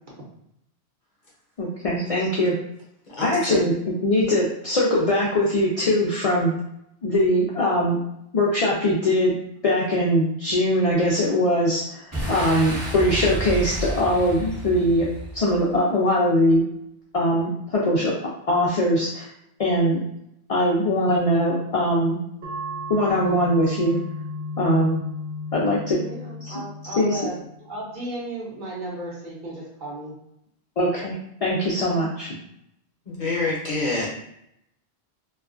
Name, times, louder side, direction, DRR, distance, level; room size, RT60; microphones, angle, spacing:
voice 1, 1.6-2.6 3.2-3.7 4.0-6.5 7.0-8.0 8.3-9.4 9.6-15.1 15.3-16.6 17.1-18.1 18.5-19.3 19.6-20.0 20.5-22.2 22.9-24.0 24.6-25.0 25.5-26.0 26.4-26.5 27.0-27.2 30.8-31.2 31.4-32.3, left 1 dB, 65° left, -5 dB, 0.3 m, -21 dB
voice 2, 3.1-3.6 33.1-34.1, left 3 dB, 50° left, -5 dB, 0.8 m, -27 dB
Boom, 12.1-15.7, right 1 dB, 15° right, 0.7 m, -31 dB
sound 1, 22.4-27.5, left 2 dB, 80° right, 0.9 m, -34 dB
voice 3, 26.0-27.4 27.6-30.1, right 1 dB, 50° right, -5 dB, 0.8 m, -34 dB
2.4 x 2.2 x 2.4 m, 0.75 s
omnidirectional pair, 1.1 m